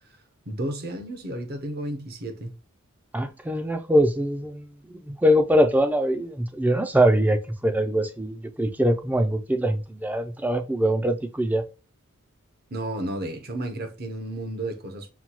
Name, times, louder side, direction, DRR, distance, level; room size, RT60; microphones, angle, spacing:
voice 1, 0.5-2.5 12.7-15.1, right 1 dB, 45° right, 0.8 m, -32 dB
voice 2, 3.1-4.7 5.1-11.6, equal, 10° right, 0.4 m, -23 dB
5.8 x 2.3 x 2.8 m
head